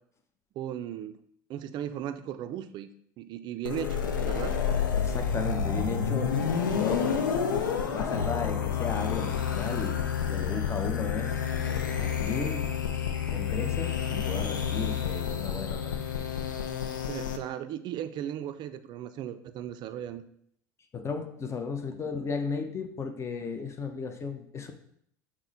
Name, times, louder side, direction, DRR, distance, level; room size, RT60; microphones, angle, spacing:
voice 1, 0.6-1.2 1.5-2.9 3.2-4.6 17.1-20.2, right 10 dB, 45° right, 10 dB, 0.4 m, -36 dB
sound 1, 3.6-17.4, left 7 dB, 90° left, 0.5 m, -29 dB
voice 2, 5.0-7.4 7.9-10.0 10.3-11.3 11.6-12.7 13.3-16.0 20.9-24.7, left 4 dB, 30° left, 6 dB, 0.6 m, -35 dB
5.9 x 2.1 x 3.9 m, 0.67 s
hypercardioid pair, 80°, 10 cm